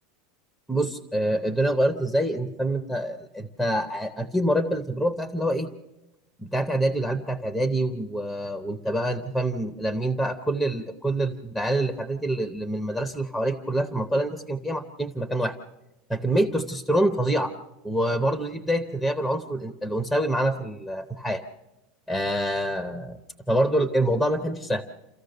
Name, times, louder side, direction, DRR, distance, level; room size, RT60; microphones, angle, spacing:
voice 1, 0.7-5.7 6.4-15.6 16.1-17.5 17.8-21.4 22.1-23.2 23.5-24.8, right 1 dB, ahead, 9 dB, 0.8 m, -26 dB
28.5 x 14.5 x 6.6 m, 0.97 s
supercardioid pair, 170°, 0 cm